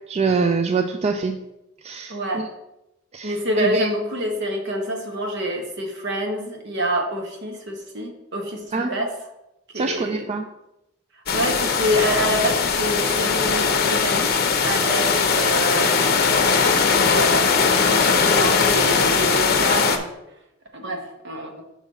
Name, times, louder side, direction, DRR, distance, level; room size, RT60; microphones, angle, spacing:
voice 1, 0.1-1.4 1.8-2.5 3.1-3.9 8.7-8.9 9.8-10.5, right 4 dB, 35° right, 6 dB, 0.3 m, -24 dB
voice 2, 2.1-2.4 3.2-9.1 9.7-10.3 11.3-15.9 16.4-20.1 20.7-21.5, equal, 60° right, 3 dB, 1.2 m, -27 dB
sound 1, 11.3-20.0, left 5 dB, 50° left, 0.7 m, -19 dB
6.0 x 4.2 x 5.4 m, 0.88 s
head